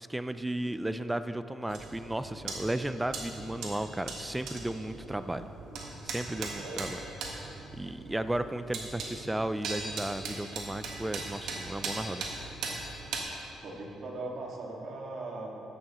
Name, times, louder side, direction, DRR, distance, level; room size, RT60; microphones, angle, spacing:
voice 1, 0.0-5.5 6.0-7.0 7.7-12.3, right 1 dB, 10° right, 11 dB, 0.4 m, -34 dB
sound 1, 1.7-13.2, right 3 dB, 80° right, 1.5 m, -40 dB
voice 2, 5.2-5.5 6.3-6.9 13.6-15.7, right 2 dB, 65° right, -1 dB, 2.0 m, -40 dB
14.0 x 11.0 x 3.1 m, 2.9 s
cardioid pair, 90°, 0 cm